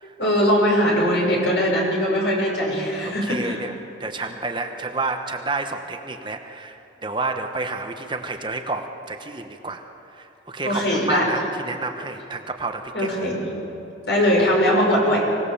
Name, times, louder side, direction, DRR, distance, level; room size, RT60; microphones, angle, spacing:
voice 1, 0.2-3.6 10.6-11.3 12.9-13.5 14.1-15.3, equal, 75° left, -2 dB, 6.1 m, -20 dB
voice 2, 3.0-3.7 4.0-6.8 7.0-9.8 10.1-13.3, right 3 dB, 25° right, 5 dB, 1.0 m, -30 dB
24.5 x 17.5 x 7.0 m, 2.9 s
head